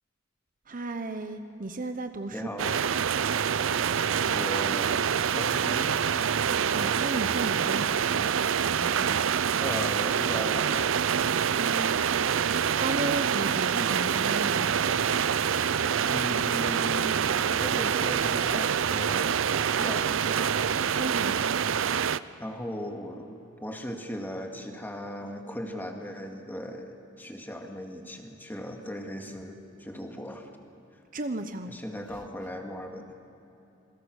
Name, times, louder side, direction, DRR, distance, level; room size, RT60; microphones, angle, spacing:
voice 1, 0.7-2.8 6.7-8.3 8.8-9.1 11.5-12.0 12.8-14.7 21.0-21.4 31.1-31.7, right 2 dB, 45° right, 8 dB, 0.9 m, -34 dB
voice 2, 2.3-2.8 4.3-4.9 5.3-6.0 9.6-11.0 16.1-17.2 17.6-20.6 22.4-30.5 31.7-33.1, equal, 10° left, 3 dB, 2.1 m, -38 dB
sound 1, 2.6-22.2, right 7 dB, 70° right, 0.5 m, -26 dB
27.5 x 22.0 x 6.5 m, 2.9 s
head